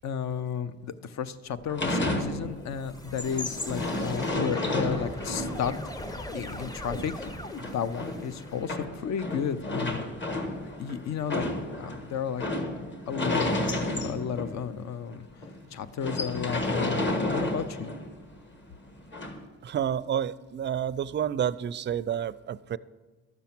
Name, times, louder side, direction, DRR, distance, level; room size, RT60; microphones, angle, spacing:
voice 1, 0.0-5.7 6.3-7.3 7.6-10.0 10.8-11.4 11.8-12.4 13.1-13.4 14.0-15.3 15.7-17.9, left 7 dB, 65° left, 13 dB, 0.7 m, -33 dB
sound 1, 1.6-8.7, left 1 dB, 10° left, 0.7 m, -41 dB
sound 2, 1.7-2.7 3.0-14.7 15.1-15.2 15.4-15.6 16.0-18.2 19.1-19.4, left 1 dB, 40° left, 1.5 m, -31 dB
voice 2, 19.6-22.8, right 9 dB, 40° right, 17 dB, 0.4 m, -29 dB
12.5 x 7.0 x 5.9 m, 1.3 s
cardioid pair, 90°, 30 cm